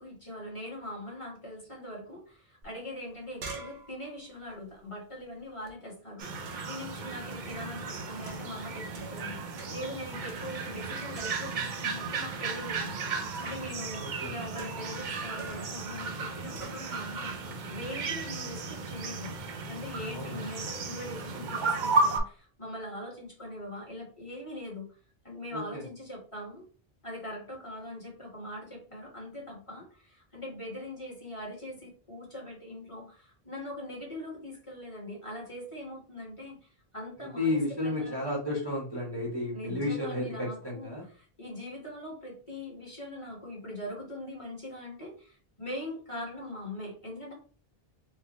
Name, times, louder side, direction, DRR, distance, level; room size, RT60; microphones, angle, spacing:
voice 1, 0.0-13.0 13.4-17.4 17.7-19.3 19.7-24.9 25.2-26.6 27.0-38.2 39.5-47.3, left 1 dB, 30° left, -2 dB, 1.4 m, -42 dB
sound 1, 2.6-2.7 3.0-5.7 6.5-6.8 7.5-7.8 8.3-9.3 9.6-9.9 10.3-10.9 11.1-11.7 13.3-13.7 14.6-15.0 15.4-15.8 16.6-16.9, right 3 dB, 75° right, 1.0 m, -47 dB
sound 2, 6.2-22.2, right 3 dB, 55° right, 0.6 m, -34 dB
voice 2, 14.0-14.3 20.1-20.5 25.5-25.8 37.4-41.0, left 2 dB, 25° right, -3 dB, 0.8 m, -32 dB
4.5 x 2.0 x 2.9 m, 0.40 s
omnidirectional pair, 1.1 m